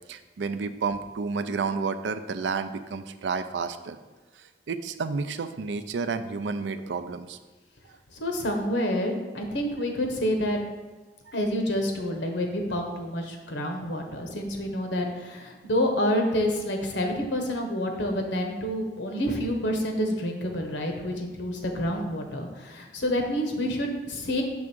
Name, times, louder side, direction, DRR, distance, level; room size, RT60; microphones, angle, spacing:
voice 1, 0.1-4.0 4.7-7.4, right 4 dB, 85° right, 11 dB, 0.4 m, -30 dB
voice 2, 8.1-10.6 11.3-24.4, equal, 85° left, 3 dB, 1.1 m, -28 dB
6.2 x 3.6 x 6.0 m, 1.2 s
head